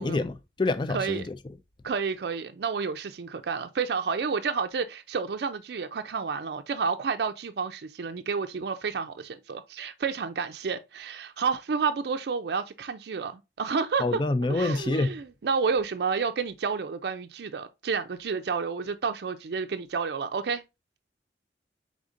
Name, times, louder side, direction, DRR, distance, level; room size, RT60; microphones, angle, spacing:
voice 1, 0.0-1.3 14.0-15.1, left 2 dB, 25° left, 0.4 m, -27 dB
voice 2, 0.9-1.3 1.8-14.2 14.5-20.6, right 5 dB, 65° right, 0.4 m, -30 dB
4.9 x 3.6 x 2.5 m
head